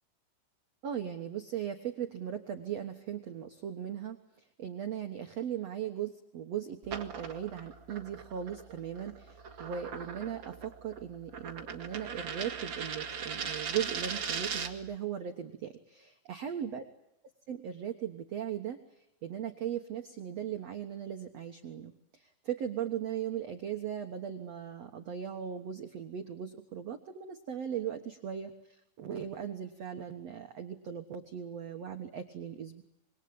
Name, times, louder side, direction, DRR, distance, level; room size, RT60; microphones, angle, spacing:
voice 1, 0.8-4.2 4.6-16.8 17.5-18.8 19.2-28.5 29.0-32.8, right 9 dB, 75° right, 5 dB, 1.5 m, -38 dB
sound 1, 6.8-14.9, right 6 dB, 55° right, 1.3 m, -39 dB
27.0 x 23.0 x 8.7 m, 0.82 s
omnidirectional pair, 5.1 m